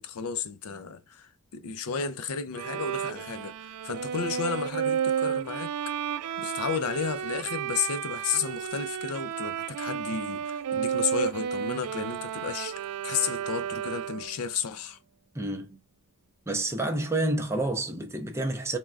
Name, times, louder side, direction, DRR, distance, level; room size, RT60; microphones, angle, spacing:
voice 1, 0.0-5.7 6.4-15.0, left 6 dB, 75° left, 0.5 m, -33 dB
Bowed string instrument, 2.5-14.4, right 8 dB, 80° right, 0.3 m, -32 dB
voice 2, 15.3-15.8 16.5-18.8, right 2 dB, 10° right, 0.5 m, -29 dB
3.3 x 2.1 x 2.4 m
head